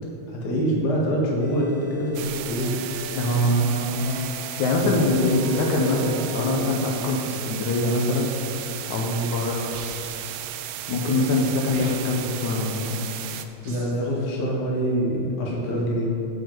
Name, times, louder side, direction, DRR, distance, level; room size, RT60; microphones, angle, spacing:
voice 1, 0.3-2.8 4.8-5.0 5.3-6.5 9.0-9.3 13.6-16.2, equal, 45° left, -2 dB, 1.5 m, -26 dB
sound 1, 1.4-2.2 2.6-3.5 3.9-4.7 5.1-6.5, right 1 dB, 5° right, 1.7 m, -43 dB
sound 2, 2.2-13.5, right 11 dB, 85° right, 2.1 m, -34 dB
voice 2, 3.1-4.3 4.6-8.3 8.9-9.6 10.9-13.0, left 2 dB, 75° left, 0 dB, 2.2 m, -23 dB
sound 3, 9.7-10.4 11.7-12.4 13.6-14.1, right 2 dB, 55° right, 1.5 m, -43 dB
9.1 x 4.8 x 7.7 m, 2.9 s
omnidirectional pair, 3.7 m